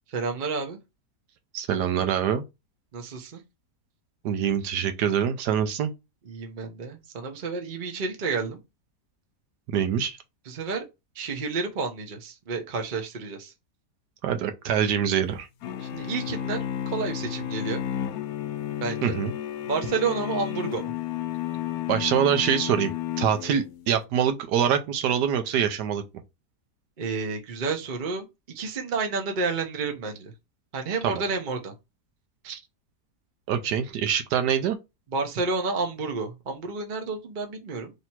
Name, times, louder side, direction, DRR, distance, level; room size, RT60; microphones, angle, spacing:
voice 1, 0.1-0.8 2.9-3.4 6.3-8.6 10.5-10.8 11.1-13.5 15.8-17.8 18.8-19.2 19.6-20.9 27.0-28.2 28.5-30.3 30.7-31.7 35.1-37.9, right 4 dB, 40° right, 0.8 m, -30 dB
voice 2, 1.5-2.4 4.2-5.9 9.7-10.2 14.2-15.5 19.0-19.3 21.9-26.0 31.0-31.2 32.4-32.6 33.5-34.8, right 8 dB, 80° right, 1.2 m, -25 dB
sound 1, 15.6-23.9, left 11 dB, 70° left, 1.0 m, -32 dB
3.3 x 2.9 x 4.3 m
omnidirectional pair, 1.8 m